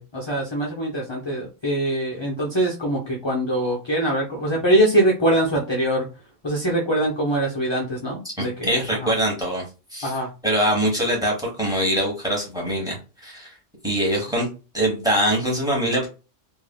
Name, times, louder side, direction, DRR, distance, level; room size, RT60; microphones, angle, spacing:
voice 1, 0.0-6.1 6.4-8.7 9.0-9.1 10.0-10.3, right 1 dB, 35° left, -2 dB, 0.5 m, -23 dB
voice 2, 8.4-9.6 9.9-10.1 10.4-13.5 13.8-14.5 14.7-16.1, equal, 5° right, -1 dB, 1.3 m, -23 dB
3.2 x 2.6 x 2.2 m, 0.31 s
omnidirectional pair, 1.3 m